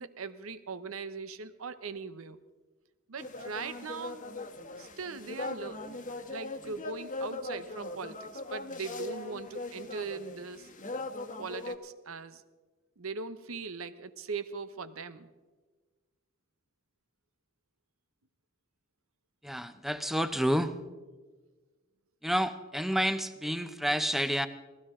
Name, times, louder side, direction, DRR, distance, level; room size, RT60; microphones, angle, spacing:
voice 1, 0.0-2.4 3.1-4.2 4.8-5.9 6.3-10.7 11.4-12.4 13.0-15.3, right 4 dB, 70° right, 13 dB, 0.8 m, -40 dB
sound 1, 3.2-11.8, left 2 dB, 40° left, 1.2 m, -40 dB
voice 2, 19.4-20.7 22.2-24.5, equal, ahead, 10 dB, 0.7 m, -29 dB
19.5 x 15.5 x 3.7 m, 1.3 s
head